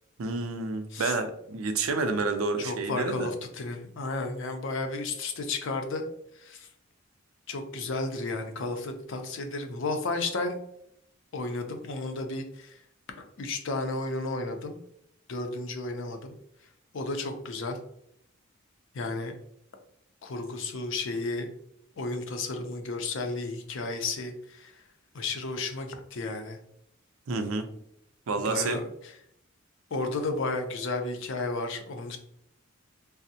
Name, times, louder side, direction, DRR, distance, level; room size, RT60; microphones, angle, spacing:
voice 1, 0.2-3.3 27.3-27.7 28.3-28.8, right 3 dB, 85° right, 7 dB, 0.5 m, -29 dB
voice 2, 2.6-6.0 6.4-6.7 7.5-10.6 11.3-12.7 13.4-14.8 15.3-16.3 16.9-17.8 18.9-19.4 20.2-21.5 22.0-24.7 25.1-26.6 28.5-28.9 29.9-32.2, left 3 dB, 65° left, 5 dB, 0.5 m, -33 dB
3.4 x 2.0 x 2.7 m, 0.71 s
head